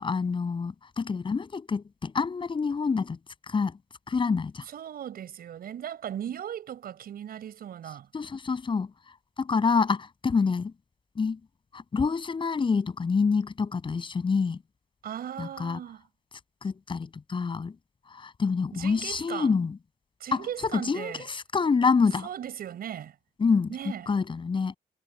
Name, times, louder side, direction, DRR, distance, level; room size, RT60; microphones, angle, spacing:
voice 1, 0.0-3.2 3.5-3.8 4.1-4.7 8.1-8.9 9.4-10.7 11.2-11.4 11.7-14.6 15.4-15.8 16.6-17.8 18.1-19.8 20.3-22.3 23.4-23.7 24.1-24.7, left 5 dB, 30° left, 7.1 m, -27 dB
voice 2, 4.7-8.1 15.0-16.1 18.7-19.5 20.2-21.2 22.2-23.1 23.7-24.1, right 10 dB, 75° right, 7.0 m, -37 dB
wide cardioid pair, 155°, 16 cm